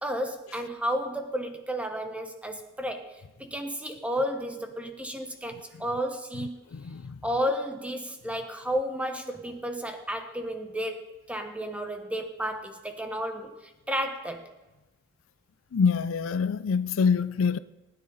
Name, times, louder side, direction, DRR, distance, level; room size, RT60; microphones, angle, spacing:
voice 1, 0.0-6.6 7.2-14.5, equal, 5° right, 1.3 m, -32 dB
voice 2, 15.7-17.6, left 5 dB, 70° left, 0.4 m, -25 dB
20.0 x 9.9 x 4.1 m
head